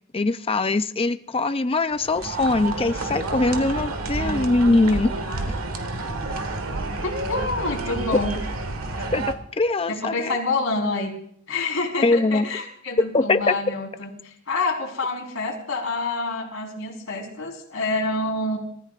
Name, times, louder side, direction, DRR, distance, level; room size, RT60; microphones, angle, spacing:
voice 1, 0.1-5.1 5.5-5.6 9.1-10.4 12.0-12.5 13.1-13.5, left 2 dB, 25° left, 11 dB, 0.6 m, -22 dB
sound 1, 1.9-9.3, right 2 dB, 85° right, 1.7 m, -29 dB
voice 2, 7.0-8.4 9.9-11.1 11.5-18.6, left 3 dB, 70° left, 0 dB, 4.4 m, -27 dB
27.5 x 15.0 x 2.5 m, 0.66 s
head